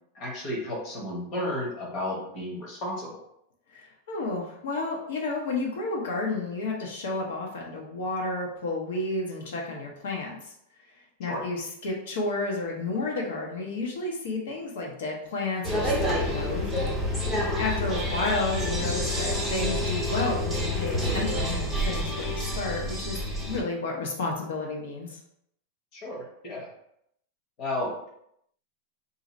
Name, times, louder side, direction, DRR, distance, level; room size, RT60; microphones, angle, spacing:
voice 1, 0.1-3.2 11.2-11.4 25.9-26.7 27.6-28.1, left 1 dB, 30° left, -3 dB, 0.9 m, -33 dB
voice 2, 3.7-10.5 11.2-17.0 17.6-23.2 23.5-25.1, left 3 dB, 80° left, -1 dB, 0.8 m, -31 dB
sound 1, 15.6-23.6, left 1 dB, ahead, 0.5 m, -28 dB
2.7 x 2.5 x 4.0 m, 0.75 s
supercardioid pair, 175°, 0 cm